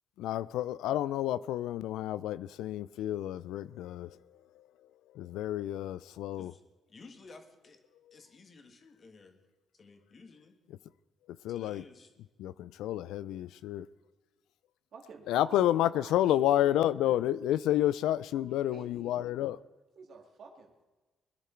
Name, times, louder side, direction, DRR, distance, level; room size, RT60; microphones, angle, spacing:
voice 1, 0.2-4.2 5.1-6.5 11.4-11.8 12.4-13.9 15.3-19.6, left 13 dB, 90° left, 0.3 m, -30 dB
voice 2, 6.9-7.8 8.1-9.4 9.7-10.6 11.5-12.1, left 3 dB, 40° left, 1.8 m, -54 dB
voice 3, 14.9-17.3 18.3-19.6 20.0-20.9, right 4 dB, 60° right, 2.1 m, -52 dB
20.5 x 10.5 x 4.5 m
cardioid pair, 90°, 0 cm